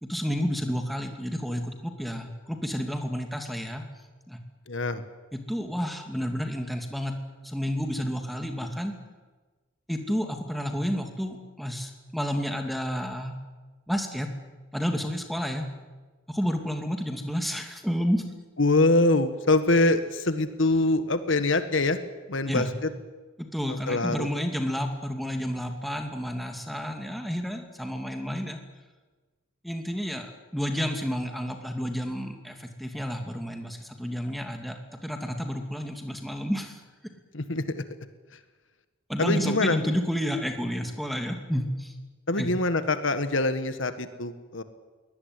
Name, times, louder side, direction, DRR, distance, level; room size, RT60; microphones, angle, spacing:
voice 1, 0.0-3.8 4.3-4.4 5.3-7.2 7.4-9.0 9.9-13.3 13.9-14.3 14.7-15.6 16.3-18.2 22.5-22.7 23.4-28.6 29.6-36.8 39.1-41.9 42.4-42.5, equal, ahead, 4 dB, 2.5 m, -30 dB
voice 2, 4.7-5.0 18.6-22.0 22.3-22.9 23.7-24.3 37.3-37.8 39.2-39.8 42.3-44.6, left 2 dB, 65° left, 10 dB, 1.6 m, -24 dB
23.0 x 18.5 x 9.7 m, 1.3 s
head